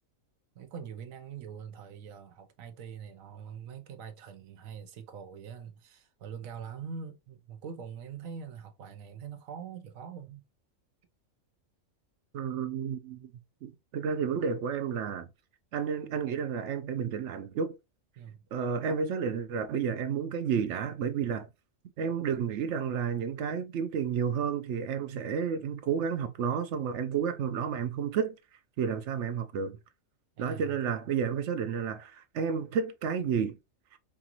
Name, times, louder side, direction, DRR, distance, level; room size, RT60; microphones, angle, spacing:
voice 1, 0.5-10.4 18.2-18.5 30.4-30.8, right 7 dB, 85° right, 1.2 m, -43 dB
voice 2, 12.3-13.3 13.6-15.3 15.7-17.8 18.5-21.5 22.0-28.4 28.8-29.8 30.4-33.6, right 7 dB, 65° right, 0.8 m, -31 dB
4.8 x 2.5 x 2.8 m
omnidirectional pair, 1.4 m